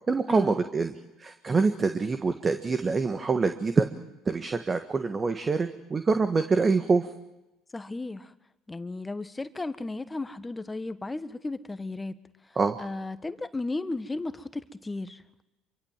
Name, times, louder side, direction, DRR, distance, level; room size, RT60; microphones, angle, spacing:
voice 1, 0.1-0.9 1.2-3.9 4.2-7.1 12.5-12.8, right 4 dB, 30° right, 8 dB, 1.6 m, -25 dB
voice 2, 7.7-8.3 8.7-12.1 12.8-15.2, left 2 dB, 15° left, 12 dB, 1.4 m, -34 dB
26.5 x 24.0 x 7.5 m, 0.97 s
hypercardioid pair, 70°, 0 cm